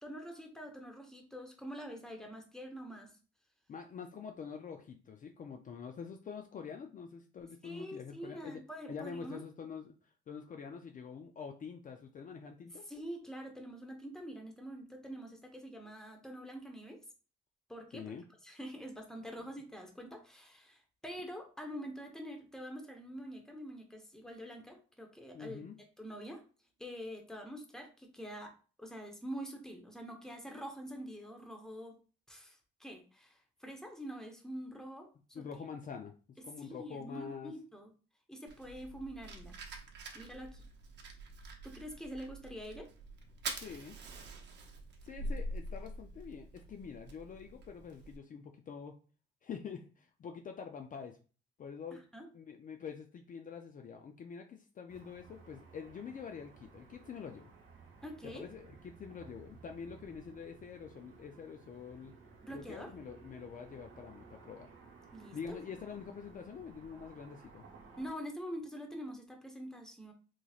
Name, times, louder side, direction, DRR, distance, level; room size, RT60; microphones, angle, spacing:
voice 1, 0.0-3.1 7.6-9.4 12.9-17.0 17.7-18.1 18.4-25.6 26.0-26.4 26.8-31.9 32.3-35.4 36.6-37.9 38.3-39.6 40.1-40.6 41.6-42.9 51.9-52.3 58.0-58.4 62.4-62.9 65.1-65.6 68.0-70.1, equal, 5° left, 3 dB, 1.0 m, -45 dB
voice 2, 3.7-8.6 8.9-9.9 10.3-12.9 17.9-18.2 25.3-25.7 35.3-36.1 36.4-37.5 43.5-44.0 45.0-49.0 49.4-51.2 51.6-52.0 52.3-57.5 58.2-62.1 62.5-64.7 65.3-67.6, left 6 dB, 40° left, 4 dB, 0.5 m, -46 dB
Fire, 38.5-48.2, right 2 dB, 60° right, 0.8 m, -45 dB
Car passing by / Traffic noise roadway noise, 54.9-68.2, right 5 dB, 90° right, 1.0 m, -57 dB
3.9 x 3.0 x 2.4 m, 0.36 s
cardioid pair, 90°, 20 cm